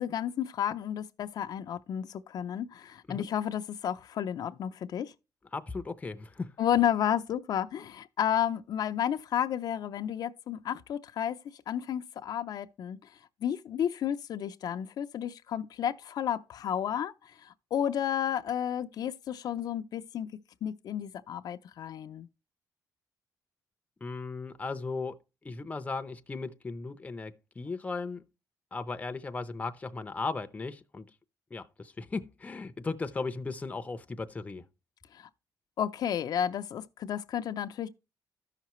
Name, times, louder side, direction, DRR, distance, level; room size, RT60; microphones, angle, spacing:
voice 1, 0.0-5.1 6.6-11.4 11.7-13.0 13.4-20.3 20.6-22.3 35.1-35.3 35.8-37.9, left 9 dB, 70° left, 0.5 m, -32 dB
voice 2, 5.5-6.5 24.0-25.2 25.4-28.2 28.7-31.1 31.5-34.6, left 3 dB, 20° left, 0.6 m, -36 dB
13.5 x 5.7 x 3.0 m
cardioid pair, 135°, 7 cm